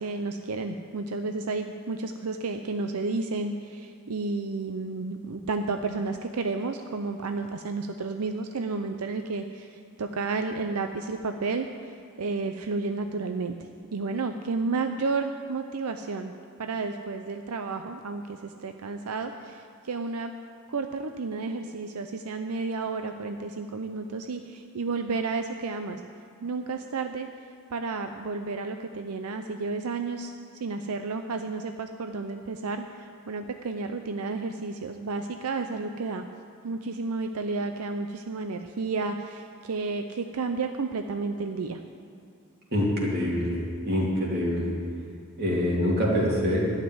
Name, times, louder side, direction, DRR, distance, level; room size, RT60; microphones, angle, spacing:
voice 1, 0.0-16.3 16.6-20.3 20.7-26.0 26.4-27.3 27.7-30.3 30.6-36.2 36.6-41.8, right 3 dB, 85° right, 6 dB, 0.6 m, -32 dB
voice 2, 42.7-43.6 43.8-44.7 45.4-46.8, equal, 45° right, -4 dB, 3.0 m, -25 dB
12.0 x 7.4 x 9.5 m, 2.5 s
head